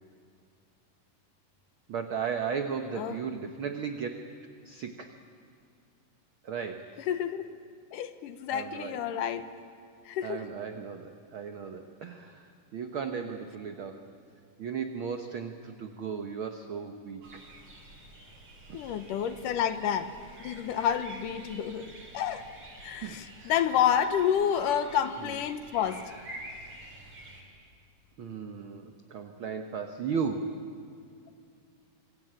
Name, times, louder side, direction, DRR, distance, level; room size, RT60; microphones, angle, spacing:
voice 1, 1.9-4.3 4.6-5.2 6.4-7.0 8.5-9.0 10.2-14.1 14.6-17.4 18.7-19.0 23.0-23.5 25.2-25.4 28.2-30.6, right 6 dB, 65° right, 6 dB, 1.3 m, -36 dB
voice 2, 7.1-7.5 7.9-9.5 10.1-10.4 18.7-20.1 20.4-22.5 22.8-26.0, left 9 dB, 75° left, 10 dB, 2.6 m, -29 dB
sound 1, 17.2-27.4, right 1 dB, 45° right, 5.5 m, -48 dB
27.0 x 23.5 x 8.9 m, 2.4 s
omnidirectional pair, 3.9 m